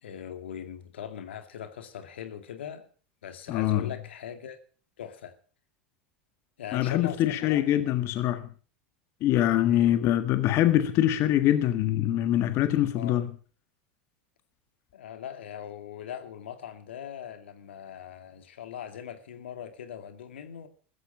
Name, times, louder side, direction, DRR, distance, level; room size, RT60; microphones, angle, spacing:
voice 1, 0.0-2.9 3.2-4.6 5.0-5.3 6.6-7.8 9.7-10.0 12.9-13.2 14.9-20.7, left 9 dB, 80° left, 2.3 m, -40 dB
voice 2, 3.5-3.9 6.7-8.5 9.2-13.3, left 12 dB, 50° left, 1.6 m, -24 dB
15.5 x 14.0 x 5.4 m
hypercardioid pair, 100°, 6 cm